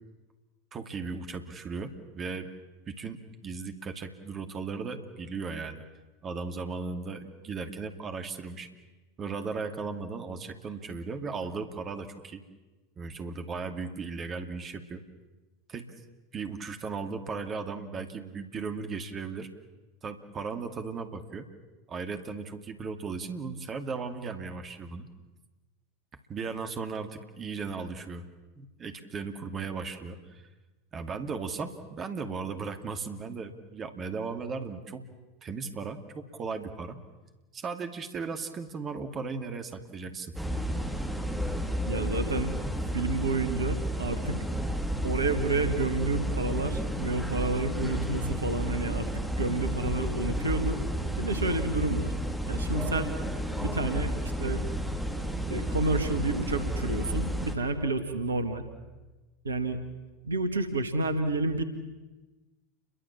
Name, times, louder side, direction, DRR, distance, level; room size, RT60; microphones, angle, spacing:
voice 1, 0.7-2.5 2.9-5.8 6.2-8.7 9.2-12.4 13.0-15.0 15.7-15.9 16.3-19.5 20.0-21.5 21.9-25.1 26.3-28.3 28.6-30.4 30.9-35.0 35.4-37.0 37.5-40.3, right 4 dB, 25° right, 7 dB, 2.5 m, -36 dB
sound 1, 40.3-57.5, equal, ahead, 2.8 m, -31 dB
voice 2, 41.8-42.5 42.9-44.4 45.0-50.8 51.2-52.1 52.4-53.1 53.6-54.6 55.5-58.6 59.4-59.8 60.2-61.6, right 2 dB, 75° right, 9 dB, 2.2 m, -30 dB
29.5 x 23.5 x 7.5 m, 1.2 s
figure-of-eight pair, 85°, 0 cm